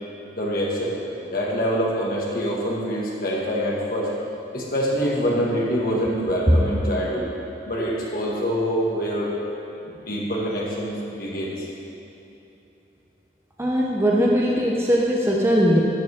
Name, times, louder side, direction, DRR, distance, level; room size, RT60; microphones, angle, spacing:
voice 1, 0.3-1.0 1.2-4.1 4.5-7.2 7.6-9.3 9.8-11.7, equal, 50° left, -4 dB, 1.8 m, -25 dB
voice 2, 13.6-15.8, equal, 15° right, -3 dB, 0.7 m, -19 dB
10.5 x 10.0 x 3.6 m, 2.9 s
head